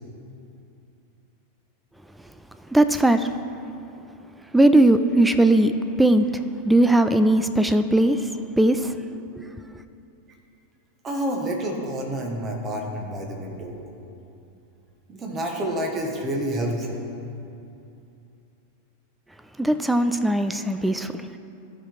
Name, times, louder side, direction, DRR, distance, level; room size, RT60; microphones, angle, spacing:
voice 1, 2.7-3.3 4.5-5.7 6.0-8.3 8.6-9.0 9.4-9.5 19.6-21.3, right 1 dB, 5° right, 10 dB, 0.3 m, -19 dB
voice 2, 11.0-13.8 15.1-17.0, right 1 dB, 25° right, 1 dB, 1.4 m, -28 dB
13.5 x 4.9 x 4.6 m, 2.7 s
figure-of-eight pair, 90°, 0 cm